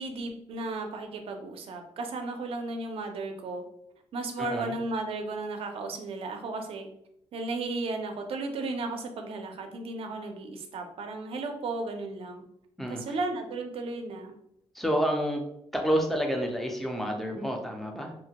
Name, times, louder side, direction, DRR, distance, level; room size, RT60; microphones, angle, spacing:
voice 1, 0.0-3.6 4.1-6.9 7.3-12.4 12.9-14.3, right 3 dB, 55° right, 5 dB, 0.5 m, -34 dB
voice 2, 4.4-4.8 12.8-13.0 14.7-15.4 15.7-18.1, equal, ahead, 2 dB, 0.4 m, -29 dB
2.8 x 2.2 x 2.8 m, 0.76 s
cardioid pair, 145°, 12 cm